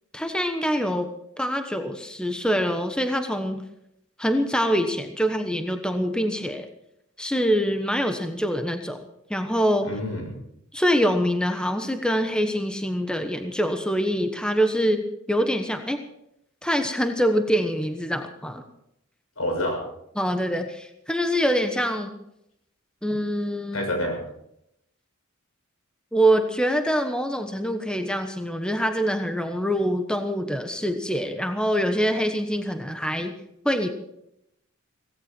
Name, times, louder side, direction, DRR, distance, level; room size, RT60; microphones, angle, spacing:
voice 1, 0.1-1.1 1.4-3.6 4.2-6.7 7.2-9.0 9.3-9.9 10.7-16.0 16.6-18.6 20.2-22.1 23.0-23.9 26.1-33.3 33.6-33.9, equal, 5° left, 6 dB, 1.1 m, -24 dB
voice 2, 9.8-10.4 19.4-19.8 23.7-24.2, left 1 dB, 90° left, 1 dB, 6.8 m, -27 dB
17.5 x 16.0 x 4.5 m, 0.78 s
head